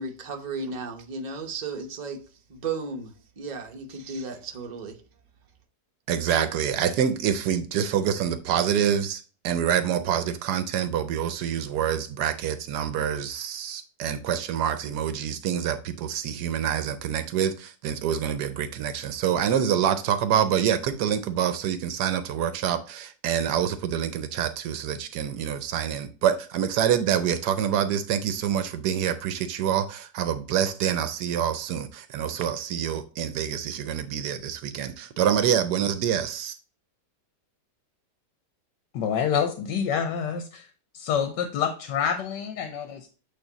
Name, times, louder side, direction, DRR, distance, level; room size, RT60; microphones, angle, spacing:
voice 1, 0.0-2.2 2.5-5.0, right 4 dB, 35° right, 0.8 m, -34 dB
voice 2, 6.1-36.6, right 9 dB, 75° right, 1.1 m, -26 dB
voice 3, 38.9-40.7 40.9-43.1, left 7 dB, 85° left, 1.3 m, -27 dB
8.4 x 3.0 x 3.9 m
omnidirectional pair, 1.8 m